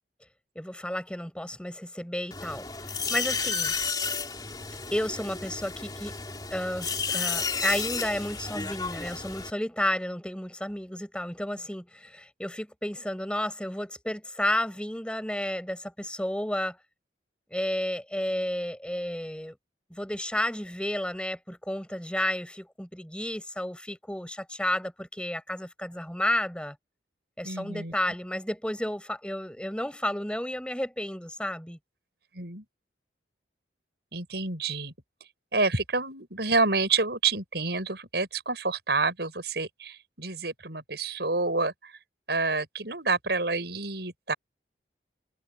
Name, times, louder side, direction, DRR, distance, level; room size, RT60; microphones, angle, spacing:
voice 1, 0.6-2.7 3.1-3.7 4.9-6.2 6.5-16.8 17.5-19.5 19.9-26.8 27.4-31.8, left 1 dB, 5° left, 5.7 m, -32 dB
sound 1, 2.3-9.5, left 5 dB, 20° left, 3.2 m, -32 dB
voice 2, 27.4-27.9 32.3-32.6 34.1-34.9 35.5-41.9 42.3-44.3, right 3 dB, 70° right, 6.6 m, -28 dB
head